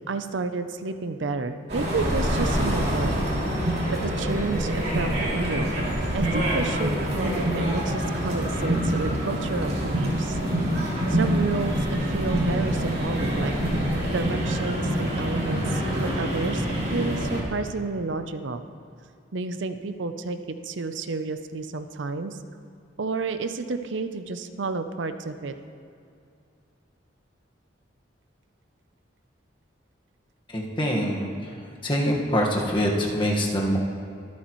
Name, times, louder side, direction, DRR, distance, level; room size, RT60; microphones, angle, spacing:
voice 1, 0.1-3.2 3.5-5.7 6.1-10.4 11.1-13.5 14.1-18.6 19.3-22.4 23.0-25.5, right 3 dB, 75° right, 9 dB, 0.6 m, -31 dB
sound 1, 1.7-17.4, equal, 55° right, 2.8 m, -26 dB
voice 2, 30.5-31.5 31.8-33.8, equal, 25° left, -2 dB, 1.5 m, -24 dB
23.0 x 8.4 x 3.1 m, 2.4 s
head